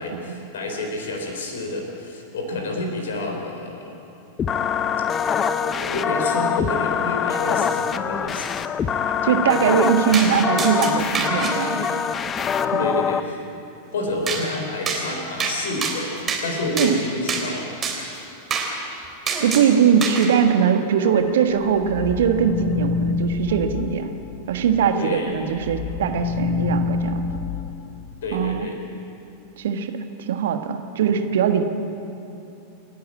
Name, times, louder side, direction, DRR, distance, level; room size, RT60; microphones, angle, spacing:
voice 1, 0.0-4.0 4.5-4.7 5.6-8.6 12.8-13.4 13.9-16.1 16.4-17.7 24.9-25.3 28.2-28.8 31.1-31.2, left 2 dB, 60° left, 2 dB, 4.0 m, -29 dB
sound 1, 4.4-13.2, left 7 dB, 25° left, 0.8 m, -24 dB
voice 2, 9.2-11.8 12.6-12.8 16.7-17.0 19.4-24.1 24.5-27.2 28.3-28.7 29.6-31.6, right 8 dB, 60° right, 7 dB, 1.5 m, -21 dB
sound 2, 10.1-10.3 10.6-11.5 14.3-14.4 14.9-15.0 15.4-15.6 15.8-16.4 16.8-16.9 17.3-17.4 17.8-18.0 18.5-18.7 19.3-19.7 20.0-20.3, right 5 dB, 20° right, 4.0 m, -25 dB
sound 3, 21.0-24.9 25.3-28.7, left 5 dB, 45° left, 1.2 m, -28 dB
28.5 x 11.5 x 8.7 m, 2.8 s
figure-of-eight pair, 90°, 0 cm